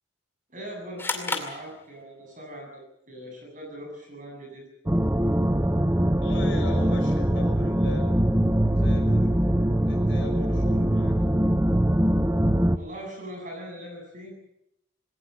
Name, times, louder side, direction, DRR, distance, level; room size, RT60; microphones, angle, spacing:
voice 1, 0.5-4.7 12.7-14.3, equal, 40° right, 2 dB, 7.9 m, -40 dB
sound 1, 1.0-2.4, left 3 dB, 10° left, 2.4 m, -33 dB
sound 2, 4.9-12.8, right 1 dB, 10° right, 0.7 m, -22 dB
voice 2, 6.2-8.1 8.7-9.4 9.9-11.2, left 2 dB, 65° left, 4 dB, 5.4 m, -40 dB
20.5 x 18.5 x 7.8 m, 0.82 s
head